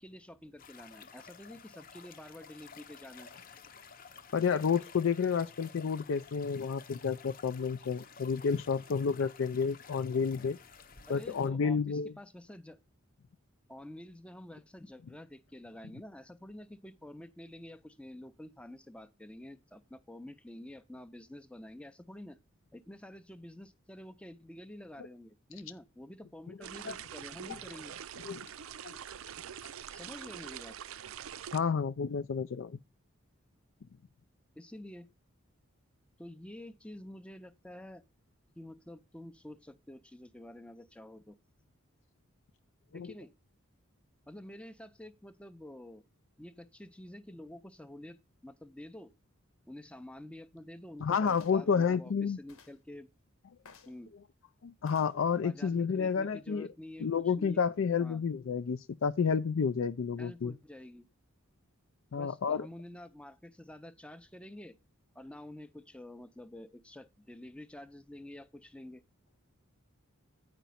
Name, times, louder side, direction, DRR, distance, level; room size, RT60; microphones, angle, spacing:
voice 1, 0.0-3.3 11.1-12.8 13.7-22.4 22.7-27.9 29.9-30.8 34.5-35.1 36.2-38.0 38.5-41.4 42.9-43.3 44.3-46.0 46.4-48.2 48.4-49.1 49.7-53.1 53.9-54.1 55.4-57.6 58.0-58.2 60.2-61.1 62.1-64.8 65.1-69.0, left 1 dB, 5° left, 0.5 m, -49 dB
sound 1, 0.6-11.5, left 6 dB, 40° left, 0.7 m, -53 dB
voice 2, 4.3-10.6 11.1-12.1 26.9-27.0 27.5-27.6 28.2-28.4 28.8-29.0 31.5-32.8 42.9-43.1 51.0-52.4 54.6-56.7 57.0-60.5 62.1-62.7, left 6 dB, 65° left, 0.4 m, -30 dB
sound 2, 26.6-31.6, right 9 dB, 75° right, 0.5 m, -45 dB
sound 3, 51.3-51.7 52.5-52.8 53.6-54.0 54.9-55.2 56.0-56.1, left 5 dB, 85° left, 1.3 m, -56 dB
9.2 x 5.2 x 5.7 m
head